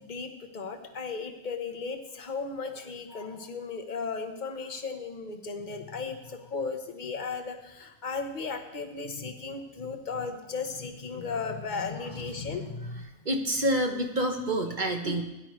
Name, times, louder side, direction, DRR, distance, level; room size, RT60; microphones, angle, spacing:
voice 1, 0.0-13.1, left 4 dB, 35° left, 6 dB, 1.0 m, -35 dB
voice 2, 13.2-15.2, right 1 dB, 40° right, 4 dB, 0.9 m, -27 dB
17.0 x 11.0 x 3.1 m, 0.99 s
omnidirectional pair, 1.5 m